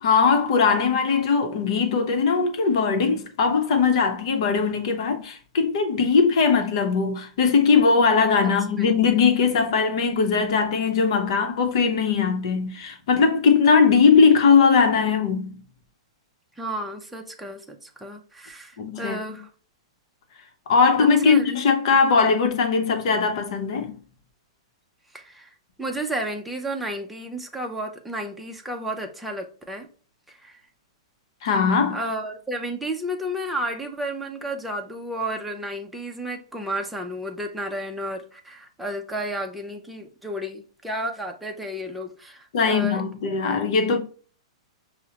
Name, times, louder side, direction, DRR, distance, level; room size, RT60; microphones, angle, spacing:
voice 1, 0.0-15.5 18.8-19.4 20.7-24.0 31.4-32.0 42.5-44.0, left 5 dB, 65° left, 0.8 m, -20 dB
voice 2, 8.4-8.9 16.6-19.5 21.2-21.6 21.9-22.0 25.1-29.9 30.3-30.6 31.9-43.0, right 1 dB, 5° right, 0.5 m, -32 dB
5.5 x 2.1 x 2.8 m
hypercardioid pair, 120°, 3 cm